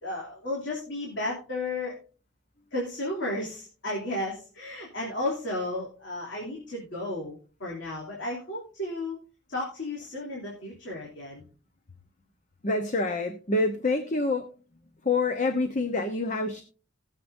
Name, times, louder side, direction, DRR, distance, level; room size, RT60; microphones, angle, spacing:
voice 1, 0.0-2.0 2.7-9.2 9.5-11.4, left 1 dB, 75° left, -3 dB, 3.1 m, -33 dB
voice 2, 12.6-14.5 15.0-16.6, left 3 dB, 40° left, 7 dB, 0.9 m, -27 dB
19.5 x 7.5 x 2.7 m, 0.37 s
head